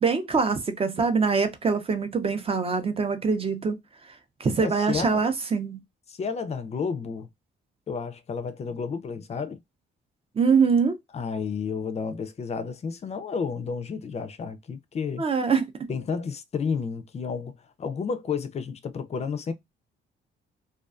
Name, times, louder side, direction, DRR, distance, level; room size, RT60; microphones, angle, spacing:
voice 1, 0.0-3.8 4.4-5.8 10.4-11.0 15.2-15.6, right 5 dB, 30° right, 0.5 m, -23 dB
voice 2, 4.6-5.2 6.1-7.3 7.9-9.6 11.1-15.2 15.9-19.5, left 5 dB, 35° left, 0.4 m, -31 dB
2.3 x 2.2 x 2.4 m
cardioid pair, 90°, 20 cm